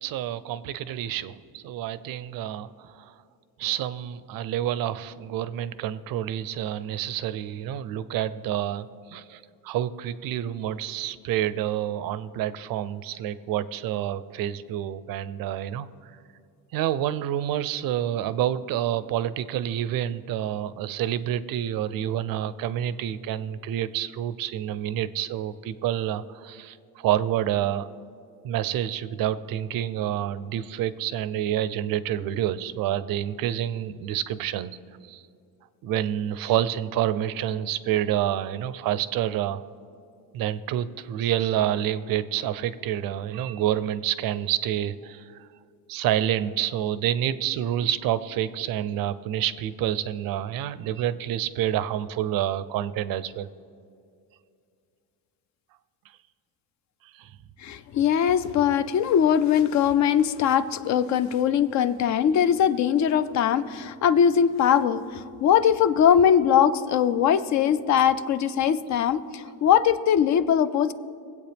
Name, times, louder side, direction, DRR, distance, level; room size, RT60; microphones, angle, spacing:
voice 1, 0.0-3.1 3.6-16.1 16.7-27.9 28.4-34.8 35.1-35.2 35.8-39.6 40.3-45.5 45.9-53.5 57.1-57.3, right 11 dB, 60° right, 16 dB, 0.5 m, -28 dB
voice 2, 57.6-70.9, left 8 dB, 45° left, 14 dB, 0.4 m, -21 dB
22.5 x 8.3 x 3.4 m, 2.4 s
cardioid pair, 170°, 41 cm